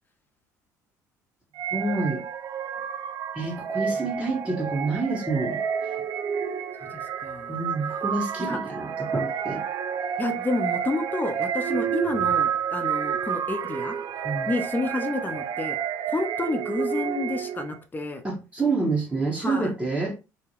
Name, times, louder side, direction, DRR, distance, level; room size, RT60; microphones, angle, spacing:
sound 1, 1.6-17.8, right 8 dB, 50° right, 0.4 m, -30 dB
voice 1, 1.7-2.2 3.3-6.0 7.5-9.6 14.2-14.5 18.2-20.2, right 3 dB, 10° right, 1.3 m, -28 dB
voice 2, 6.8-7.6 8.5-8.6 10.2-14.0 14.5-15.8 16.1-18.2 19.4-19.7, left 2 dB, 20° left, 0.8 m, -30 dB
3.6 x 2.2 x 3.0 m
hypercardioid pair, 60°, 10 cm